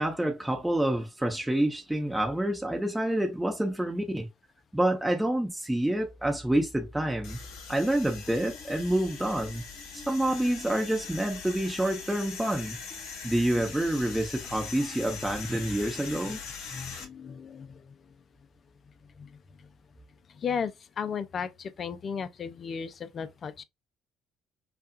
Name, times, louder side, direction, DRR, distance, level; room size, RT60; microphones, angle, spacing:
voice 1, 0.0-4.3 4.7-7.4 7.7-9.6 10.1-12.8 13.2-16.4, right 1 dB, 10° right, 0.9 m, -28 dB
sound 1, 7.2-17.0, left 5 dB, 75° left, 1.3 m, -41 dB
voice 2, 16.7-17.9 19.2-19.7 20.3-23.6, left 6 dB, 45° left, 0.5 m, -35 dB
5.7 x 2.3 x 2.4 m
hypercardioid pair, 65°, 0 cm